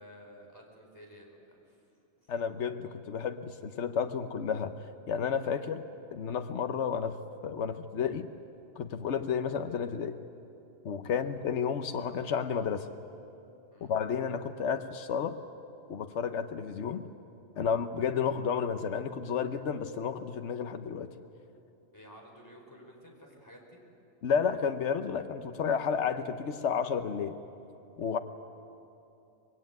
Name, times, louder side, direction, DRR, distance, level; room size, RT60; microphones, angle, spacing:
voice 1, 0.0-1.8 2.2-2.3 11.1-11.3 13.7-13.9 21.9-23.8, equal, 15° left, 0 dB, 4.7 m, -53 dB
voice 2, 2.3-4.7 5.1-5.8 6.1-7.2 7.4-8.3 8.8-10.2 10.8-12.9 13.8-15.4 15.9-17.1 17.6-21.1 24.2-27.4 28.0-28.2, left 7 dB, 80° left, 7 dB, 1.2 m, -31 dB
24.5 x 21.0 x 9.3 m, 2.8 s
omnidirectional pair, 1.2 m